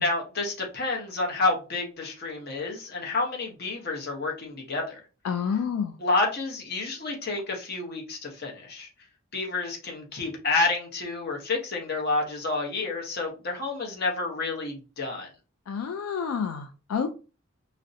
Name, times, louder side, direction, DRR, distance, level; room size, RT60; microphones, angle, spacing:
voice 1, 0.0-5.0 6.0-8.9 9.3-15.3, left 3 dB, 45° left, 0.8 m, -29 dB
voice 2, 5.2-6.0 15.7-17.1, left 6 dB, 80° left, 0.3 m, -29 dB
2.5 x 2.0 x 2.6 m
head